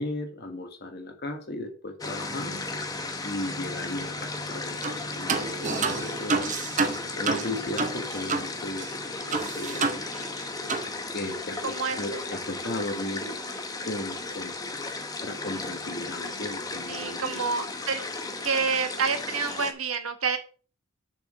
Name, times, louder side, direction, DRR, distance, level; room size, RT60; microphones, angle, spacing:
voice 1, 0.0-2.6 3.2-6.4 7.2-8.9 9.3-9.9 11.1-13.4 13.8-14.5 15.2-17.6, left 1 dB, 50° left, 5 dB, 1.6 m, -35 dB
sound 1, 2.0-19.7, left 3 dB, 15° left, 0.9 m, -35 dB
sound 2, 4.8-5.0 5.3-8.5 8.8-8.9 9.3-10.4 10.7-10.9, right 4 dB, 35° right, 0.8 m, -28 dB
voice 2, 11.6-12.2 16.9-18.0 18.4-20.4, right 5 dB, 90° right, 8 dB, 1.4 m, -28 dB
7.0 x 6.2 x 4.9 m, 0.38 s
head